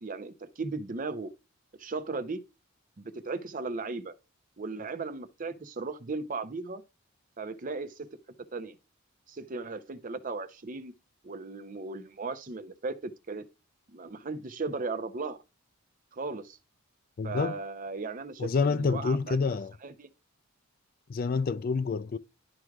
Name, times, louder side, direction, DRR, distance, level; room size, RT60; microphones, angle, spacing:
voice 1, 0.0-1.3 1.8-2.4 3.0-4.1 4.6-6.8 7.4-8.1 8.5-8.8 9.3-10.9 11.2-13.4 13.9-15.4 16.1-16.6 17.2-19.6 19.8-20.1, right 3 dB, 40° right, 0.6 m, -36 dB
voice 2, 17.2-17.6 18.4-19.8 21.1-22.2, left 4 dB, 45° left, 0.3 m, -28 dB
11.5 x 4.6 x 2.3 m
head